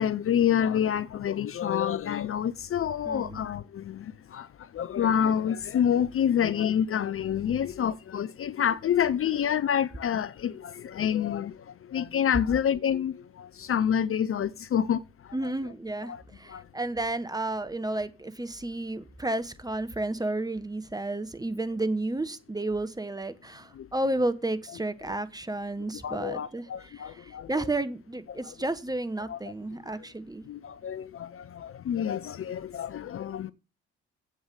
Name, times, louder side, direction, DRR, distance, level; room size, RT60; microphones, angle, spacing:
voice 1, 0.0-4.5 4.7-11.6 11.9-15.0 16.1-16.2 16.5-16.6 23.8-23.9 26.0-27.7 28.3-28.5 29.3-29.4 30.5-33.5, left 9 dB, 45° left, 0.6 m, -28 dB
voice 2, 3.1-3.4 15.3-30.4, right 2 dB, 10° right, 1.2 m, -32 dB
7.9 x 7.3 x 6.8 m
hypercardioid pair, 45°, 31 cm